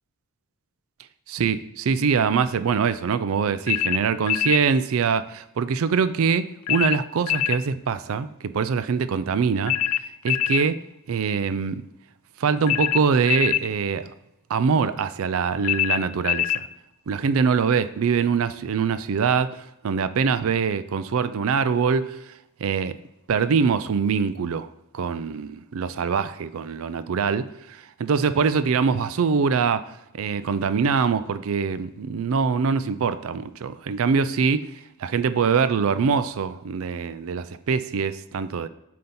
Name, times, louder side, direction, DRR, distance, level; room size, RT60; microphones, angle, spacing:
voice 1, 1.3-9.8 10.2-10.8 11.1-11.8 12.4-14.1 14.5-16.7 17.1-19.6 19.8-22.2 22.6-23.0 23.3-24.7 24.9-27.5 28.0-29.8 30.2-34.7 35.0-38.7, right 5 dB, 65° right, 14 dB, 0.4 m, -23 dB
sound 1, 3.7-4.6 6.7-7.6 9.7-10.7 12.7-13.7 15.6-16.6, left 13 dB, 80° left, 0.3 m, -24 dB
7.6 x 2.9 x 5.4 m, 0.86 s
head